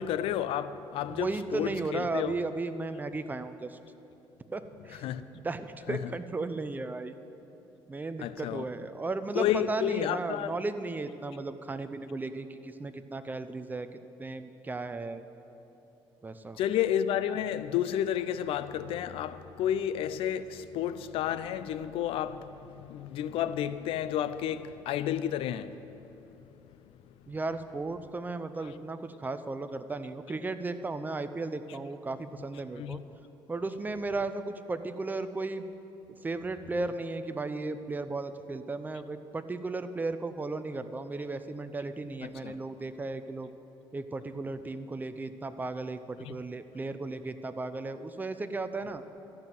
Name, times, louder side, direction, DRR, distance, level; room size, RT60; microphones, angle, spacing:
voice 1, 0.0-2.3 4.9-5.2 5.9-6.1 8.2-8.7 9.3-10.5 16.6-25.8 32.8-33.0 42.4-42.6 46.2-46.3, left 10 dB, 75° left, 0.5 m, -31 dB
voice 2, 1.1-3.8 4.5-5.1 5.3-7.1 7.9-13.9 14.2-15.2 16.2-16.6 27.3-33.0 33.5-35.7 36.2-43.5 43.9-49.0, right 3 dB, 20° right, 0.6 m, -35 dB
13.5 x 6.0 x 9.2 m
cardioid pair, 95°, 10 cm